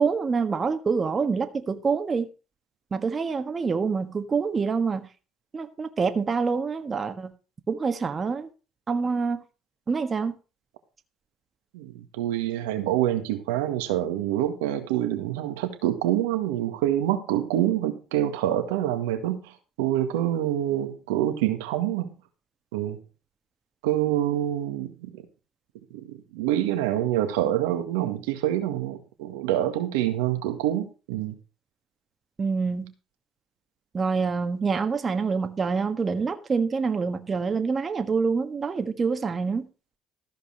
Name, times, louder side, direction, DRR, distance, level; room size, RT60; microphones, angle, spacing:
voice 1, 0.0-2.3 2.9-5.1 5.5-7.3 7.7-8.5 8.9-9.4 9.9-10.3 32.4-32.9 33.9-39.7, right 5 dB, 35° right, 1.4 m, -26 dB
voice 2, 11.7-22.1 22.7-23.0 23.8-25.2 25.9-31.3, right 12 dB, 90° right, 1.7 m, -26 dB
14.5 x 5.2 x 6.3 m
supercardioid pair, 70°, 0 cm